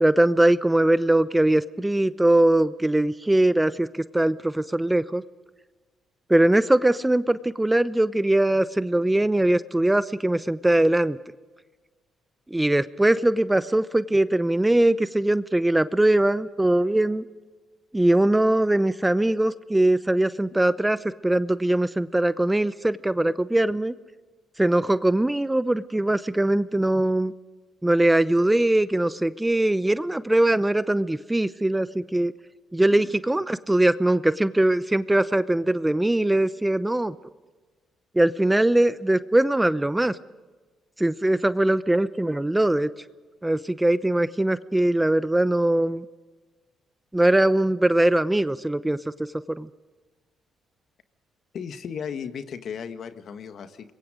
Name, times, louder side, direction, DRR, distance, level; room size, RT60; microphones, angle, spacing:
voice 1, 0.0-5.2 6.3-11.2 12.5-17.2 17.9-23.9 24.6-27.3 27.8-32.3 32.7-37.1 38.1-40.2 41.0-42.9 43.4-46.0 47.1-49.0 49.6-49.7, right 1 dB, 10° right, 15 dB, 0.7 m, -21 dB
voice 2, 51.5-53.9, left 7 dB, 60° left, 9 dB, 1.7 m, -35 dB
26.5 x 22.5 x 5.1 m, 1.3 s
cardioid pair, 90°, 0 cm